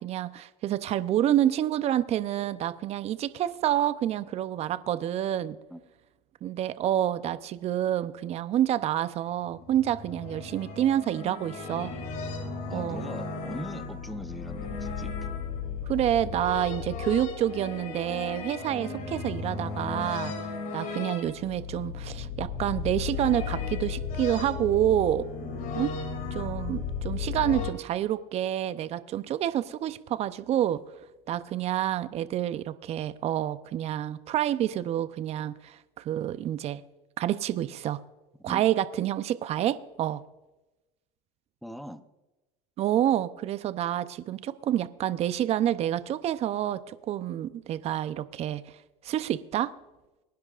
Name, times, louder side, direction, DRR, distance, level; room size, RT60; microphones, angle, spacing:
voice 1, 0.0-5.6 6.4-11.9 12.7-13.1 15.9-25.2 25.7-25.9 26.3-30.8 31.3-36.8 37.2-38.0 38.4-40.2 42.8-48.6 49.0-49.7, right 11 dB, 40° right, 14 dB, 0.6 m, -28 dB
sound 1, 9.4-27.7, left 5 dB, 55° left, 2.6 m, -35 dB
voice 2, 12.7-15.2 25.4-25.5 38.5-38.6 41.6-42.0, equal, ahead, 10 dB, 0.7 m, -41 dB
24.5 x 10.5 x 2.5 m, 1.1 s
supercardioid pair, 120°, 16 cm